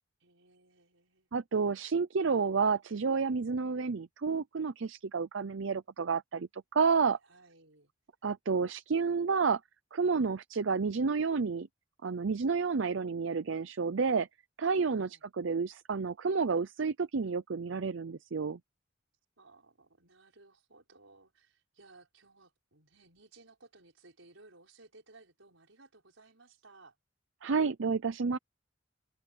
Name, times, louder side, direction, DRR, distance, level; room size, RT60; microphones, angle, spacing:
voice 1, 0.2-1.3 6.8-7.9 14.9-15.2 19.4-27.0, right 3 dB, 90° right, 5.1 m, -60 dB
voice 2, 1.3-7.2 8.2-9.6 9.9-11.7 12.0-14.3 14.6-18.6 27.4-28.4, right 5 dB, 70° right, 0.6 m, -30 dB
head